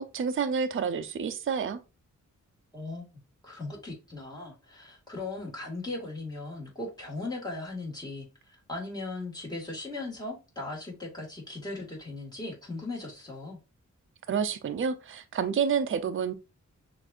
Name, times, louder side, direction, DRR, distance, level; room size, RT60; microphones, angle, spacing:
voice 1, 0.0-1.8 14.3-16.3, right 6 dB, 40° right, 0.5 m, -29 dB
voice 2, 2.7-3.1 3.4-13.6, left 2 dB, 15° left, 1.8 m, -38 dB
6.2 x 2.6 x 2.4 m
wide cardioid pair, 85°, 31 cm